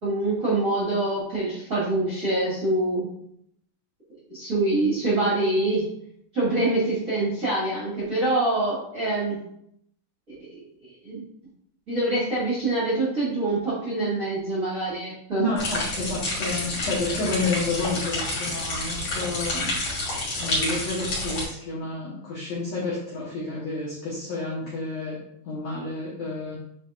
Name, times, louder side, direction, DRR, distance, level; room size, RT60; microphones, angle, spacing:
voice 1, 0.0-3.0 4.3-5.9 6.3-9.4 10.5-10.6 11.0-11.2 11.9-15.4, right 2 dB, 35° right, -8 dB, 1.4 m, -25 dB
voice 2, 15.4-19.7 20.3-25.2 25.4-26.6, left 2 dB, 70° left, -7 dB, 1.6 m, -30 dB
sound 1, 15.6-21.4, left 2 dB, 40° left, 3.0 m, -29 dB
7.8 x 4.9 x 2.4 m, 0.73 s
omnidirectional pair, 4.7 m